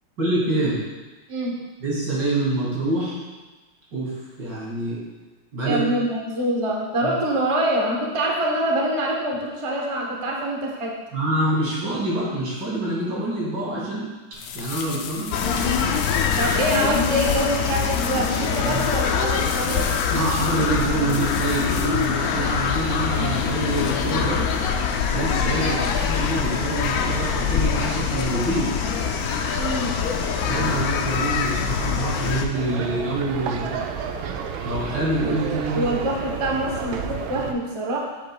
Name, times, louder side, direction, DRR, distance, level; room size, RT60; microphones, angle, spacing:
voice 1, 0.2-0.8 1.8-3.2 3.9-4.1 4.4-5.0 5.5-5.8 7.0-7.1 11.1-14.1 14.5-15.3 18.6-18.9 20.1-24.5 25.1-28.7 30.4-33.7 34.6-35.9, right 2 dB, 60° right, -6 dB, 2.9 m, -26 dB
voice 2, 5.6-11.0 16.4-19.9 25.6-25.9 29.6-30.0 35.7-38.1, right 1 dB, 45° right, -1 dB, 0.4 m, -25 dB
sound 1, 14.3-22.8, left 7 dB, 90° left, 1.4 m, -36 dB
sound 2, 15.3-32.5, left 6 dB, 70° left, 0.8 m, -24 dB
sound 3, 32.5-37.5, right 7 dB, 85° right, 1.4 m, -31 dB
8.1 x 7.9 x 2.3 m, 1.2 s
omnidirectional pair, 2.2 m